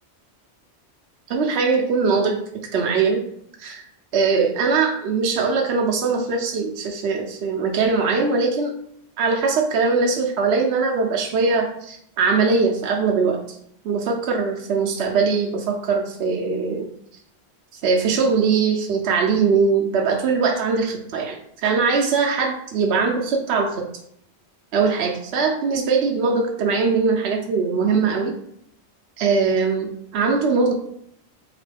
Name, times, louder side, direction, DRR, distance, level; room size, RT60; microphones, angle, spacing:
voice 1, 1.3-2.4 2.7-3.2 3.6-3.8 4.1-8.7 9.2-13.4 13.8-16.9 17.8-21.4 21.6-23.9 24.7-28.3 29.2-30.7, right 4 dB, 70° right, 1 dB, 0.8 m, -21 dB
3.9 x 2.9 x 3.3 m, 0.70 s
omnidirectional pair, 1.2 m